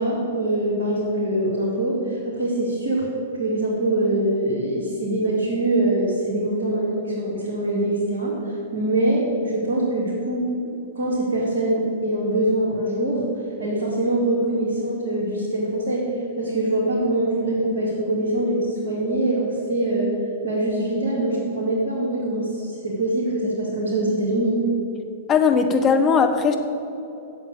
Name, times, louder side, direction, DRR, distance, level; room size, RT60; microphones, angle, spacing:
voice 1, 0.0-3.1 3.4-10.5 10.9-13.2 13.6-24.6, right 1 dB, 60° right, -6 dB, 2.6 m, -23 dB
voice 2, 25.3-26.6, left 5 dB, 25° left, 6 dB, 1.1 m, -18 dB
8.5 x 7.5 x 8.4 m, 3.0 s
figure-of-eight pair, 105°, 0 cm